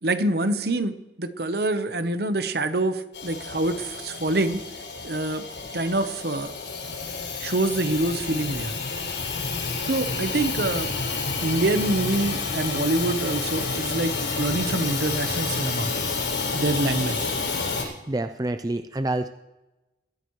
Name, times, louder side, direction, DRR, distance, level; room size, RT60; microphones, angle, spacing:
voice 1, 0.0-4.6 5.0-5.5 5.7-6.5 7.4-8.7 9.8-10.9 11.4-15.9 16.5-17.3, right 2 dB, 55° right, 10 dB, 0.9 m, -26 dB
Hiss / Toilet flush / Trickle dribble, 3.1-17.8, left 4 dB, 85° left, 6.3 m, -29 dB
voice 2, 18.1-19.3, right 2 dB, 20° right, 9 dB, 0.4 m, -27 dB
22.0 x 14.0 x 3.1 m, 1.0 s
head